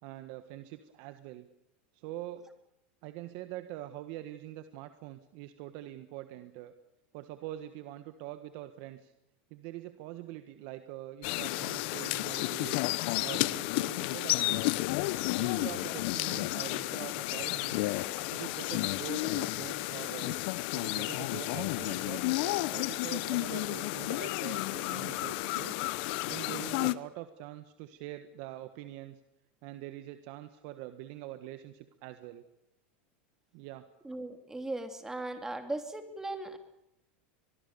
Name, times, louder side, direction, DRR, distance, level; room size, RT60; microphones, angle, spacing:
voice 1, 0.0-1.5 1.9-2.5 3.0-6.7 7.1-9.1 9.5-12.8 13.2-14.7 15.4-17.9 18.3-20.4 20.7-25.8 26.3-29.2 29.6-32.4 33.5-33.8, right 14 dB, 60° right, 10 dB, 1.5 m, -44 dB
sound 1, 11.2-26.9, left 20 dB, 60° left, 1.0 m, -32 dB
voice 2, 34.0-36.6, right 2 dB, 10° right, 7 dB, 3.0 m, -38 dB
24.0 x 21.5 x 6.9 m, 0.83 s
supercardioid pair, 130°, 6 cm